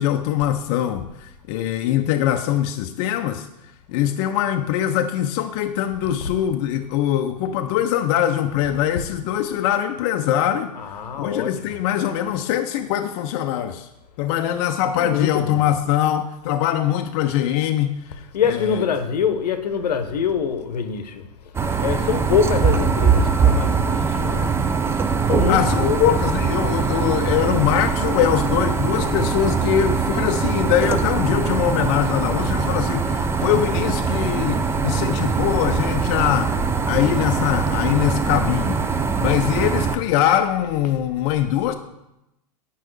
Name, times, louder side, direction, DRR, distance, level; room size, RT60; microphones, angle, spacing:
voice 1, 0.0-3.5 3.9-10.7 11.1-13.9 14.2-18.2 18.5-18.8 25.5-36.5 36.9-41.7, left 11 dB, 45° left, 0.5 m, -22 dB
voice 2, 10.7-11.8 15.0-15.7 18.3-24.6 25.3-26.2, left 7 dB, 75° left, 0.8 m, -25 dB
sound 1, 21.5-40.0, right 5 dB, 10° right, 0.4 m, -22 dB
8.9 x 5.4 x 3.2 m
hypercardioid pair, 105°, 21 cm